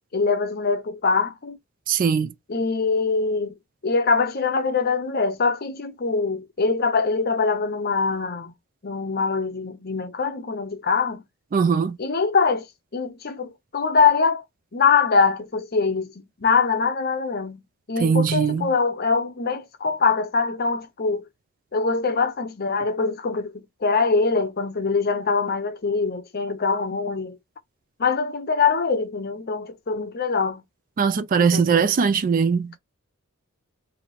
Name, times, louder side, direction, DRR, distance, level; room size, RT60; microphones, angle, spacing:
voice 1, 0.0-1.6 2.5-3.5 3.8-8.5 8.8-11.2 12.0-12.7 12.9-14.4 14.7-17.6 17.9-21.2 21.7-27.4 28.0-30.6 31.4-31.9, left 4 dB, 45° left, 0.7 m, -23 dB
voice 2, 1.9-2.3 11.5-12.0 18.0-18.7 31.0-32.7, right 6 dB, 40° right, 0.3 m, -20 dB
3.0 x 2.8 x 4.0 m
head